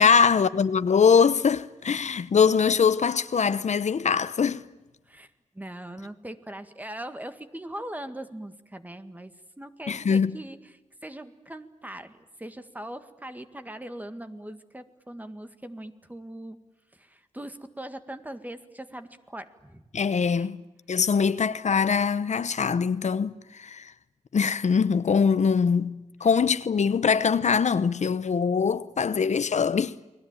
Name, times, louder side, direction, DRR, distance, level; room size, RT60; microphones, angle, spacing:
voice 1, 0.0-4.6 9.9-10.4 19.9-20.6 20.9-23.9 24.3-25.9 26.2-29.9, left 6 dB, 70° left, 0.9 m, -22 dB
voice 2, 5.5-9.3 9.6-16.6 16.9-19.8 20.3-20.5, right 1 dB, 15° right, 1.9 m, -40 dB
30.0 x 21.5 x 9.1 m
wide cardioid pair, 80°, 12 cm